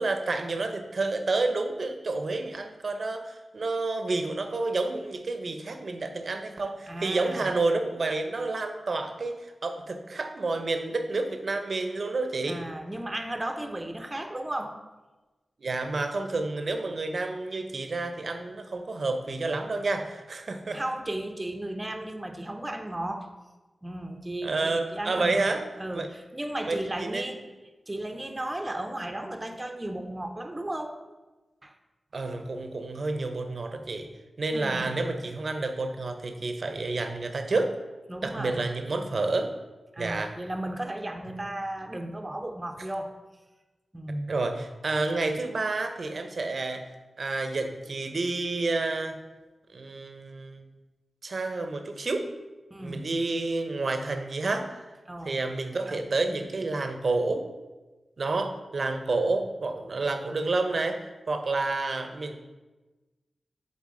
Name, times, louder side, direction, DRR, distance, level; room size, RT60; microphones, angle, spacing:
voice 1, 0.0-12.6 15.6-20.8 24.4-25.6 25.9-26.1 26.7-27.3 32.1-34.1 34.4-37.7 38.2-39.5 40.0-40.3 44.3-46.9 47.2-49.2 49.7-50.6 51.2-52.2 52.8-54.8 55.3-57.5 58.2-62.4, right 3 dB, 60° right, 7 dB, 0.6 m, -29 dB
voice 2, 6.9-7.5 12.5-14.8 20.7-23.3 23.8-25.4 25.8-27.4 27.9-31.0 31.6-31.7 34.5-35.0 38.1-38.6 39.9-43.1 43.9-44.3 52.7-53.1 55.1-55.4, right 1 dB, 20° right, 5 dB, 0.6 m, -35 dB
7.4 x 3.8 x 3.7 m, 1.2 s
wide cardioid pair, 65°, 0 cm